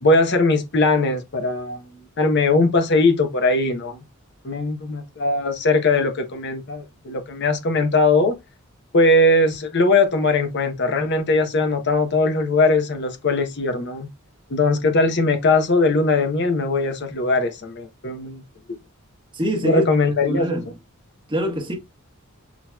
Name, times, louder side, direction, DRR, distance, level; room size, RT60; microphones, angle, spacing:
voice 1, 0.0-4.0 4.4-8.3 8.9-14.1 14.5-18.4 19.6-20.6, left 2 dB, 55° left, 0.8 m, -20 dB
voice 2, 19.3-19.9 20.3-20.6 21.3-21.7, equal, 25° right, 1.2 m, -24 dB
6.0 x 2.9 x 2.3 m
head